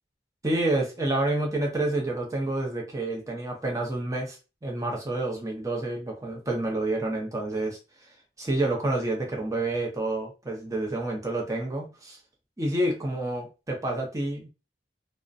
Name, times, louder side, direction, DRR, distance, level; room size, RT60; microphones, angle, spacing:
voice 1, 0.4-8.1 8.4-12.2 12.6-14.5, right 2 dB, 20° right, 0 dB, 0.5 m, -29 dB
2.4 x 2.1 x 2.5 m, 0.31 s
head